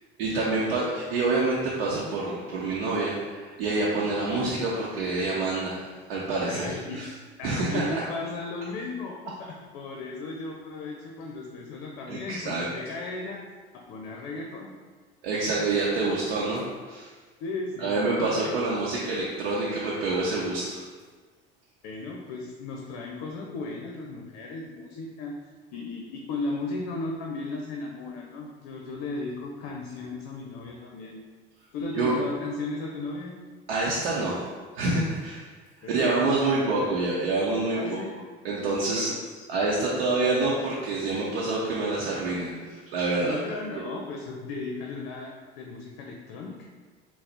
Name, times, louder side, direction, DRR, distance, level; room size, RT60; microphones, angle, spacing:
voice 1, 0.2-7.1 7.4-8.0 12.1-12.6 15.2-17.1 17.8-20.8 32.0-32.2 33.7-34.5 34.7-35.5 35.9-38.0 38.4-39.1 39.5-43.4, right 3 dB, 75° right, -6 dB, 0.7 m, -27 dB
voice 2, 6.5-13.4 13.7-14.7 17.4-18.6 21.8-25.4 25.7-31.2 31.7-33.4 35.8-36.9 37.7-38.2 38.9-39.4 43.2-46.7, left 3 dB, 65° left, 0 dB, 0.6 m, -36 dB
4.1 x 2.1 x 4.2 m, 1.5 s
hypercardioid pair, 65°, 30 cm